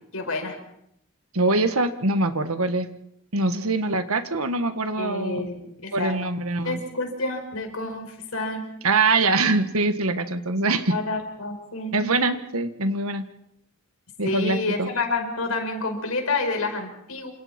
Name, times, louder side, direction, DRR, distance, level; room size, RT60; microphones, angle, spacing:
voice 1, 0.1-0.6 5.0-6.1 6.6-8.6 10.6-11.9 14.2-17.3, left 3 dB, 80° left, 4 dB, 5.5 m, -29 dB
voice 2, 1.3-2.9 3.3-5.5 5.9-6.8 8.8-11.0 11.9-13.2 14.2-14.9, right 3 dB, 85° right, 9 dB, 1.7 m, -23 dB
28.0 x 26.5 x 4.5 m, 0.76 s
head